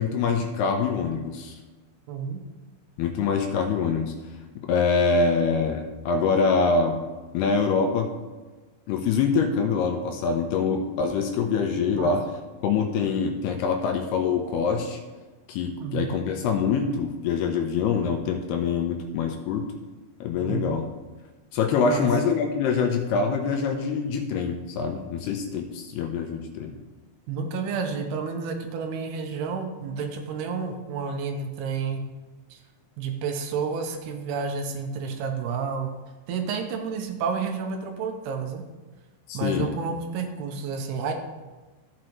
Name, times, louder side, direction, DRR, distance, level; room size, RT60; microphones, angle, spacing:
voice 1, 0.0-1.6 3.0-4.1 4.7-7.0 7.3-8.1 8.9-12.2 12.6-15.0 15.5-19.7 20.2-20.9 21.5-26.7 39.3-39.7, left 5 dB, 80° left, 4 dB, 2.5 m, -25 dB
voice 2, 2.1-2.4 11.9-12.1 15.8-16.2 20.4-20.8 21.9-22.1 27.3-32.0 32.5-32.6 33.0-35.9 36.3-38.7 39.3-41.1, right 5 dB, 75° right, 4 dB, 2.7 m, -30 dB
14.5 x 6.0 x 3.1 m, 1.3 s
omnidirectional pair, 5.1 m